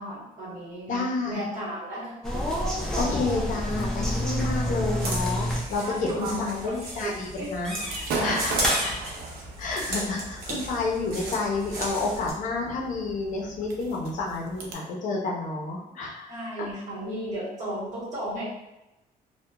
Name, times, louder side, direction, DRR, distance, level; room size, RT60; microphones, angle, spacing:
voice 1, 0.0-2.2 5.8-7.5 16.3-18.4, right 1 dB, 50° right, -8 dB, 1.2 m, -34 dB
voice 2, 0.9-1.4 3.0-5.8 6.2-7.7 8.2-8.9 9.6-16.3, left 3 dB, 55° left, -2 dB, 0.6 m, -30 dB
sound 1, 2.2-5.7 6.0-6.5 6.7-7.0 7.6-8.0 8.6-9.1, equal, 5° left, 0.4 m, -28 dB
sound 2, 5.0-12.3, right 1 dB, 65° right, 0.9 m, -36 dB
Gunshot gunfire / Fireworks, 7.8-14.7, right 3 dB, 90° right, 0.5 m, -37 dB
2.8 x 2.1 x 2.2 m, 0.93 s
cardioid pair, 160°, 16 cm